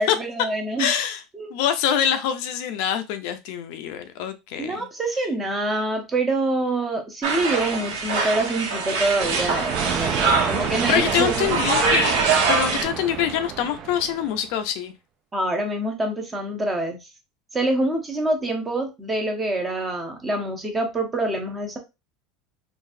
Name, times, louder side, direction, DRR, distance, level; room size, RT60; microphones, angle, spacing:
voice 1, 0.0-0.9 1.3-1.5 4.6-11.5 15.3-17.0 17.5-21.8, right 2 dB, 15° right, 0.8 m, -26 dB
voice 2, 0.8-1.2 1.5-4.9 10.9-12.1 12.5-14.9, left 9 dB, 60° left, 0.5 m, -25 dB
sound 1, 7.2-12.8, right 4 dB, 75° right, 1.2 m, -23 dB
Thunder, 9.2-14.6, right 8 dB, 30° right, 0.4 m, -30 dB
3.8 x 2.4 x 2.6 m
supercardioid pair, 160°, 0 cm